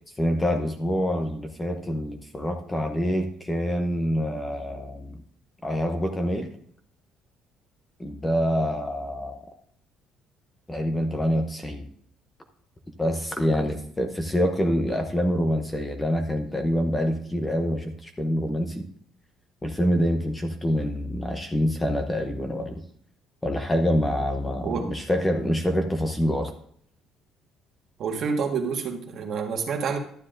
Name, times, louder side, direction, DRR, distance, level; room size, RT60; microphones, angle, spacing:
voice 1, 0.2-5.2 5.6-6.5 8.0-9.4 10.7-11.9 13.0-18.9 19.6-22.8 23.4-26.5, equal, 10° left, 5 dB, 0.7 m, -26 dB
voice 2, 28.0-30.0, right 5 dB, 40° right, 3 dB, 1.5 m, -28 dB
12.0 x 9.9 x 2.5 m, 0.62 s
cardioid pair, 180°, 0 cm